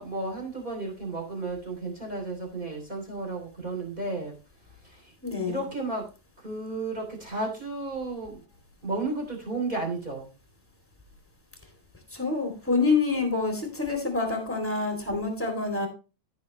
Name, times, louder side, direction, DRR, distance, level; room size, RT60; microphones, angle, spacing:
voice 1, 0.0-4.3 4.8-5.1 5.5-6.1 6.4-8.4 8.8-10.3, right 2 dB, 15° right, 3 dB, 3.0 m, -33 dB
voice 2, 5.2-5.6 12.1-15.9, left 4 dB, 5° left, 3 dB, 2.0 m, -27 dB
14.5 x 6.3 x 3.1 m, 0.31 s
omnidirectional pair, 4.0 m